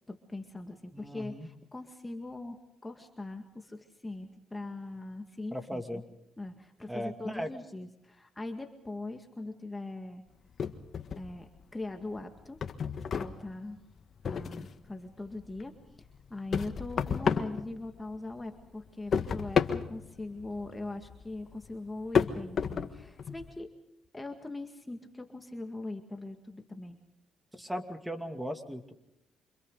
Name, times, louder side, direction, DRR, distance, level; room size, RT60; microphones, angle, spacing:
voice 1, 0.1-6.0 6.4-10.2 11.2-12.6 13.1-13.8 14.2-23.8 24.1-27.0, left 2 dB, 15° left, 4 dB, 2.0 m, -41 dB
voice 2, 0.9-1.5 5.5-6.0 6.9-7.5 27.5-28.9, equal, 5° right, 6 dB, 2.5 m, -37 dB
sound 1, 10.6-11.6 12.0-14.9 15.3-18.3 18.6-23.5, left 6 dB, 50° left, 1.6 m, -32 dB
29.0 x 27.0 x 4.0 m, 0.78 s
cardioid pair, 85°, 0 cm